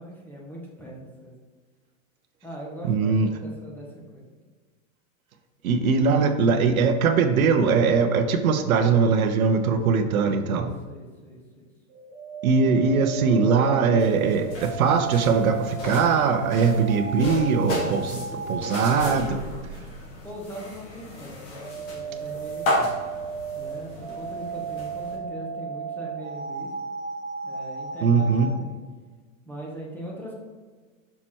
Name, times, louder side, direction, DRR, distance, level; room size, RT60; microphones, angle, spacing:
voice 1, 0.0-1.3 2.4-4.3 10.3-11.7 17.7-19.8 20.2-22.9 23.6-26.7 27.4-28.8 29.5-30.3, right 1 dB, 5° left, -4 dB, 1.4 m, -41 dB
voice 2, 2.8-3.3 5.6-10.7 12.4-18.2 18.5-19.4 28.0-28.5, right 5 dB, 85° right, 6 dB, 0.9 m, -21 dB
sound 1, 11.9-19.3 21.3-28.6, right 5 dB, 15° right, 0.9 m, -34 dB
sound 2, 14.0-25.2, left 1 dB, 35° left, 1.6 m, -34 dB
5.9 x 4.4 x 4.5 m, 1.4 s
supercardioid pair, 145°, 41 cm